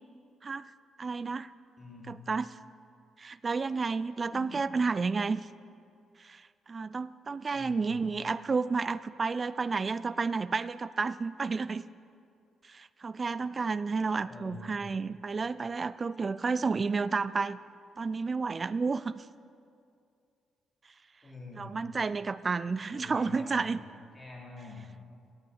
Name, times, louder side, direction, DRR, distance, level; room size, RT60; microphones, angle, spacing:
voice 1, 1.0-1.5 2.1-2.6 3.2-5.4 6.2-11.8 12.6-17.6 18.0-19.3 21.6-23.8, right 4 dB, 35° right, 16 dB, 0.3 m, -31 dB
voice 2, 7.5-7.9 14.2-14.8 21.2-21.8 22.9-23.8 24.1-24.9, left 2 dB, 20° left, -3 dB, 3.3 m, -46 dB
9.0 x 8.5 x 8.6 m, 2.4 s
cardioid pair, 90°, 0 cm